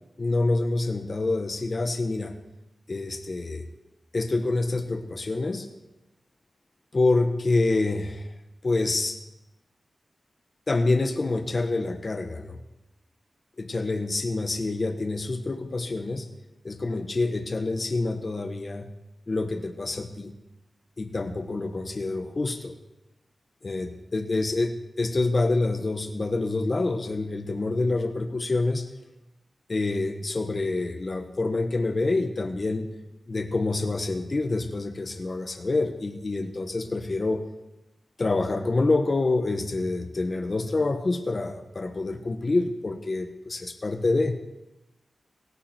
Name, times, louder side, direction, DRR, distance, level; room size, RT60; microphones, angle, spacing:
voice 1, 0.2-2.3 2.9-3.7 4.1-5.7 6.9-8.3 8.6-9.2 10.7-12.6 13.6-16.3 16.6-18.9 19.3-20.3 21.0-22.7 23.6-28.8 29.7-32.9 33.3-37.4 38.2-44.4, left 2 dB, 50° left, 6 dB, 1.5 m, -27 dB
17.5 x 13.0 x 4.6 m, 0.94 s
cardioid pair, 55°, 0 cm